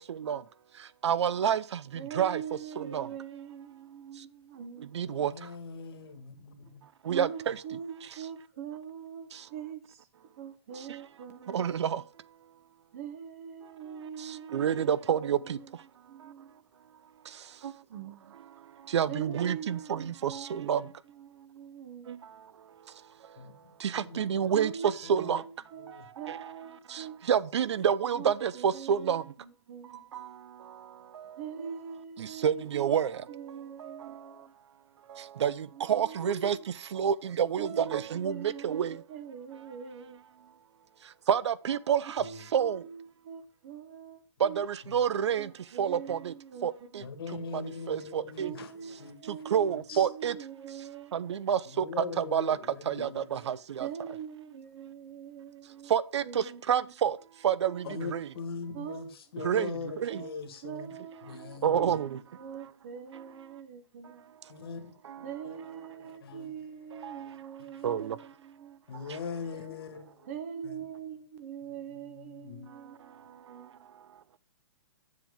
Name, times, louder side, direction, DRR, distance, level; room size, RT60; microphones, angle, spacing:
voice 1, 0.1-0.4 1.0-1.8 2.1-2.4 2.8-3.1 4.9-5.3 7.1-7.6 11.5-12.0 14.5-15.6 18.9-20.8 22.1-22.2 23.8-25.4 26.3-26.4 26.9-29.2 30.1-30.3 32.2-33.2 33.8-34.0 35.4-36.6 36.9-39.0 41.3-42.2 42.5-42.8 44.4-45.5 45.8-46.3 46.6-47.0 47.5-47.6 47.9-48.5 49.3-50.4 51.1-52.6 52.9-53.9 55.9-57.2 57.4-58.3 59.4-60.2 61.6-62.2 67.0-67.1 67.8-68.2, right 8 dB, 70° right, 0.5 m, -28 dB
voice 2, 1.9-5.3 7.1-10.1 10.4-11.6 12.9-15.0 15.4-15.7 16.1-16.6 17.9-18.2 19.1-22.2 24.5-27.2 28.1-30.1 31.4-33.0 33.3-34.5 35.7-36.7 37.6-40.6 42.2-44.6 45.4-47.1 48.4-51.4 53.8-55.9 56.2-56.9 58.7-59.1 59.4-60.3 60.6-62.0 62.4-64.2 65.2-68.8 70.3-73.9, right 8 dB, 30° right, 0.8 m, -43 dB
voice 3, 5.1-6.8 23.4-24.5 25.0-25.4 25.8-26.1 42.2-42.3 44.8-45.0 47.0-50.1 51.7-53.4 57.8-60.9 61.2-62.0 64.5-66.6 67.0-67.9 68.9-70.3 70.6-70.8 71.6-73.2, left 5 dB, 55° left, 1.6 m, -42 dB
7.6 x 7.3 x 3.6 m
hypercardioid pair, 175°, 15 cm